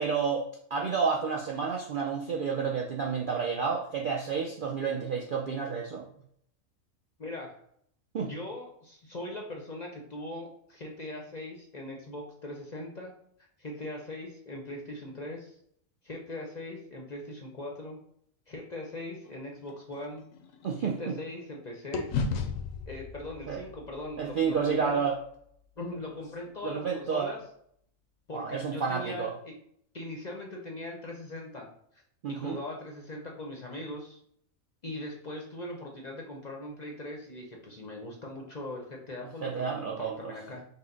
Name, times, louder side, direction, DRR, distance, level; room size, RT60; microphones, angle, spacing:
voice 1, 0.0-6.1 8.1-8.3 20.6-21.1 23.5-23.6 24.2-25.2 26.6-27.3 28.3-29.3 32.2-32.6 39.4-40.4, right 6 dB, 60° right, -1 dB, 0.5 m, -30 dB
voice 2, 7.2-7.6 8.2-13.1 13.6-15.6 16.0-18.0 18.5-20.2 20.8-22.1 22.9-25.0 25.8-27.4 28.3-29.5 29.9-31.7 31.9-34.2 34.8-40.6, left 1 dB, 45° left, 0 dB, 0.6 m, -40 dB
sound 1, 19.2-21.5 21.9-26.2, left 4 dB, 85° left, 1.0 m, -37 dB
5.5 x 2.1 x 3.8 m, 0.68 s
omnidirectional pair, 1.4 m